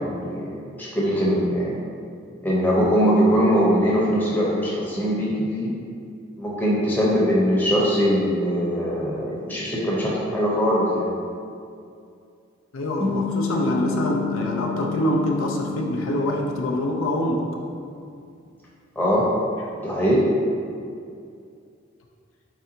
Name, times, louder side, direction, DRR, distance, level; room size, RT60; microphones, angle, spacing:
voice 1, 0.0-1.7 2.4-5.7 6.4-11.1 19.0-19.3 19.8-20.3, equal, 10° left, -6 dB, 0.7 m, -21 dB
voice 2, 12.7-17.4, equal, 80° left, 0 dB, 0.5 m, -24 dB
sound 1, 13.0-17.6, left 7 dB, 25° right, 0.4 m, -31 dB
4.8 x 3.3 x 2.8 m, 2.4 s
head